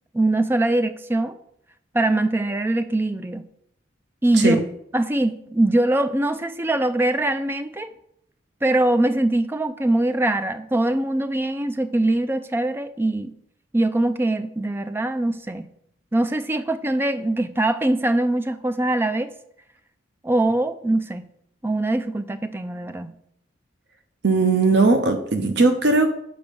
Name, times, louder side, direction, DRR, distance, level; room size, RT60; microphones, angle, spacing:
voice 1, 0.1-1.3 1.9-3.4 4.2-4.6 4.9-7.9 8.6-13.3 13.7-15.7 16.1-19.3 20.2-21.3 21.6-23.1, right 1 dB, 10° right, 10 dB, 0.3 m, -22 dB
voice 2, 24.2-26.1, right 3 dB, 60° right, 7 dB, 0.7 m, -18 dB
6.9 x 5.2 x 5.3 m, 0.73 s
head